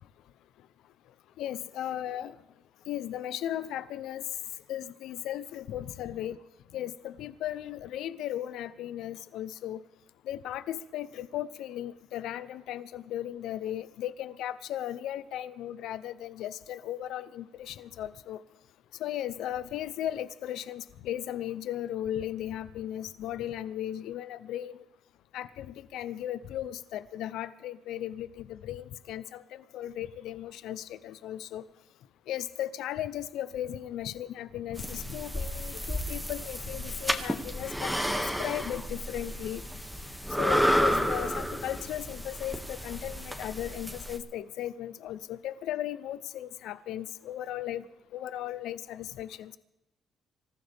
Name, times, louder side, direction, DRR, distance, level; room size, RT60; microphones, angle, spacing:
voice 1, 1.4-2.4 2.9-4.3 4.7-6.4 6.7-9.8 10.2-18.4 19.0-24.8 25.3-31.6 32.3-39.6 40.4-47.8 48.1-49.6, left 12 dB, 85° left, 15 dB, 0.7 m, -36 dB
sound 1, 34.7-44.2, equal, ahead, 2.0 m, -31 dB
26.0 x 14.5 x 3.5 m, 0.94 s
cardioid pair, 90°, 0 cm